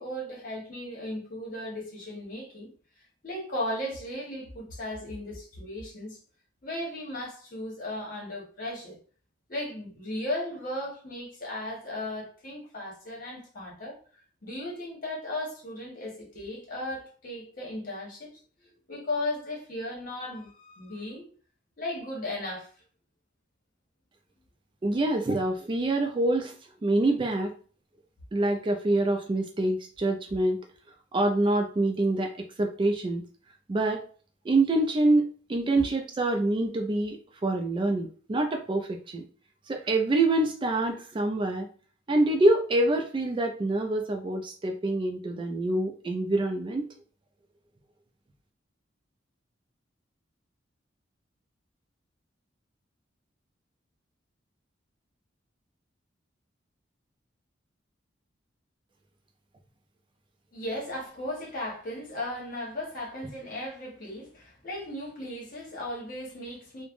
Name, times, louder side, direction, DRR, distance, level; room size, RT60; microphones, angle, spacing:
voice 1, 0.0-2.7 3.2-6.2 6.6-9.0 9.5-14.0 14.4-18.4 18.9-21.3 21.8-22.7 60.5-66.8, left 1 dB, 45° left, 1.0 m, -36 dB
voice 2, 24.8-26.5 26.8-27.5 28.3-30.6 31.1-33.3 33.7-34.0 34.4-39.2 39.7-41.7 42.1-46.9, right 2 dB, 25° right, 0.3 m, -26 dB
3.1 x 2.1 x 2.5 m
head